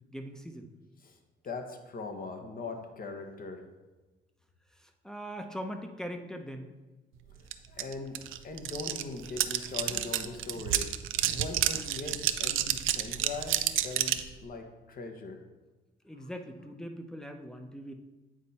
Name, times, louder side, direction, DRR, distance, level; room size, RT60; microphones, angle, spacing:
voice 1, 0.1-0.7 4.7-6.8 16.0-17.9, equal, 5° left, 5 dB, 0.8 m, -41 dB
voice 2, 1.4-3.7 7.3-15.4, left 3 dB, 45° left, 5 dB, 1.1 m, -41 dB
sound 1, 7.5-7.6 7.8-14.3, right 12 dB, 85° right, 0.5 m, -30 dB
8.8 x 4.3 x 4.2 m, 1.2 s
cardioid pair, 90°, 20 cm